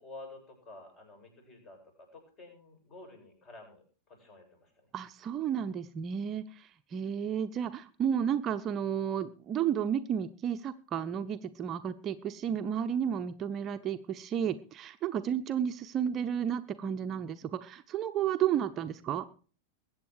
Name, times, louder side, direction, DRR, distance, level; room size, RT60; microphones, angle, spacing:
voice 1, 0.0-4.9, left 2 dB, 35° left, 4 dB, 7.9 m, -51 dB
voice 2, 4.9-19.2, right 9 dB, 30° right, 9 dB, 0.8 m, -32 dB
21.5 x 8.9 x 4.7 m, 0.39 s
figure-of-eight pair, 90°, 0 cm